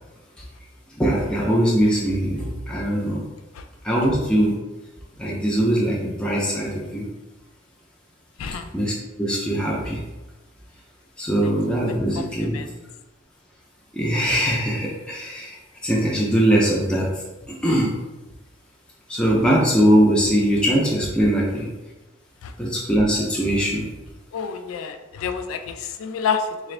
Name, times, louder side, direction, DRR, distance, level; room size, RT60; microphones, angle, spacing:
voice 1, 1.0-3.2 3.8-4.6 5.2-7.1 8.7-10.0 11.2-12.6 13.9-17.1 17.5-18.0 19.1-21.7 22.6-23.9, equal, 5° left, -4 dB, 0.4 m, -21 dB
voice 2, 24.3-26.7, left 6 dB, 90° left, 8 dB, 0.4 m, -28 dB
4.0 x 2.4 x 3.1 m, 1.1 s
head